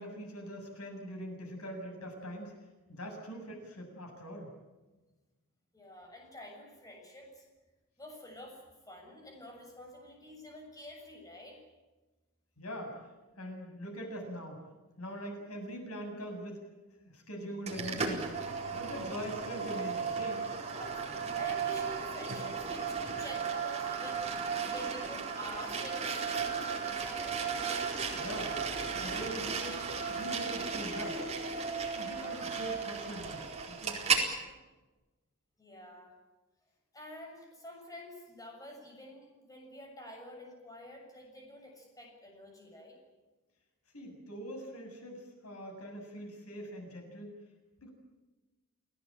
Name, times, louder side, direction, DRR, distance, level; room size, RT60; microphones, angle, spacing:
voice 1, 0.0-2.5 2.9-4.5 12.6-13.0 13.4-14.6 15.0-16.6 17.0-18.3 18.7-20.5 28.1-28.6 28.9-31.2 31.9-33.9 43.9-47.4 47.8-47.9, equal, 85° left, 2 dB, 7.7 m, -42 dB
voice 2, 5.7-7.4 8.0-11.6 18.8-19.0 20.8-24.2 24.7-27.4 35.6-36.1 36.9-43.0, left 1 dB, 15° left, 1 dB, 7.0 m, -48 dB
sound 1, 17.7-34.3, right 5 dB, 30° right, 4.4 m, -35 dB
29.0 x 18.0 x 9.0 m, 1.2 s
head